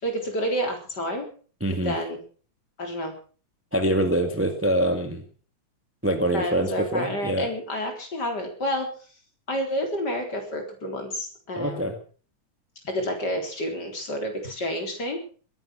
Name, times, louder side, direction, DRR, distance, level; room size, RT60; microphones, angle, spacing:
voice 1, 0.0-1.3 1.8-2.2 2.8-3.1 6.3-8.9 9.5-12.0 12.8-15.2, equal, 35° left, 4 dB, 4.2 m, -29 dB
voice 2, 1.6-2.0 3.7-5.2 6.0-7.5 11.5-12.0, right 1 dB, 10° right, 7 dB, 0.9 m, -24 dB
21.0 x 11.0 x 5.9 m, 0.42 s
omnidirectional pair, 3.4 m